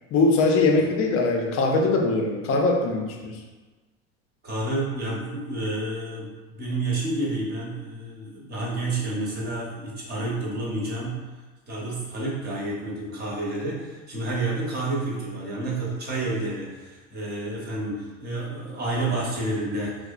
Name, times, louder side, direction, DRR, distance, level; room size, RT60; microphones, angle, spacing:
voice 1, 0.1-3.4, left 3 dB, 40° left, 2 dB, 0.5 m, -21 dB
voice 2, 4.4-11.2 11.7-20.0, right 2 dB, 25° right, -5 dB, 0.8 m, -29 dB
2.8 x 2.0 x 2.3 m, 1.3 s
hypercardioid pair, 95°, 38 cm